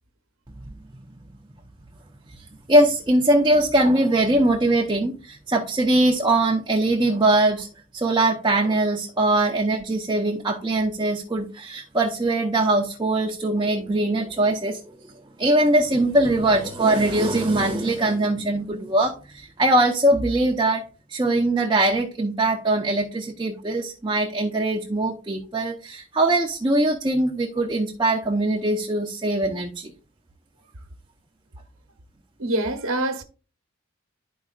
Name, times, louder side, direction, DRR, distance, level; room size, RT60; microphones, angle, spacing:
voice 1, 2.3-7.7 7.9-15.1 15.4-20.8 21.1-29.9, right 1 dB, 20° right, 0.6 m, -21 dB
voice 2, 32.4-33.2, right 1 dB, 70° right, 1.0 m, -25 dB
12.0 x 4.7 x 2.4 m
head